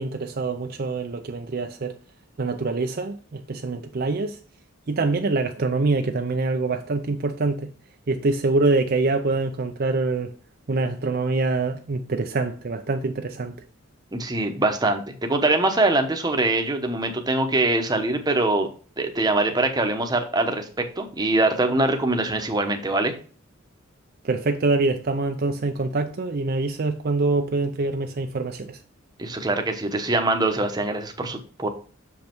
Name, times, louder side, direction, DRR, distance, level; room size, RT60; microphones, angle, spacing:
voice 1, 0.0-2.0 2.4-4.4 4.9-7.7 8.1-10.3 10.7-13.5 24.2-28.8, right 3 dB, 50° right, 0.6 m, -25 dB
voice 2, 14.1-18.7 19.0-23.1 29.2-31.7, right 2 dB, 20° right, 1.0 m, -23 dB
6.7 x 5.3 x 4.5 m
head